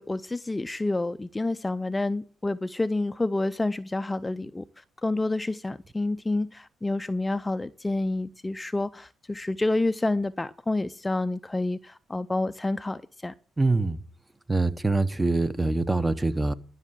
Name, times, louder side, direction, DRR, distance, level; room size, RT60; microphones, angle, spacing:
voice 1, 0.0-13.3, left 2 dB, 15° left, 0.5 m, -29 dB
voice 2, 13.6-14.0 14.5-16.5, right 2 dB, 15° right, 0.8 m, -24 dB
12.5 x 6.4 x 7.4 m
cardioid pair, 90°, 0 cm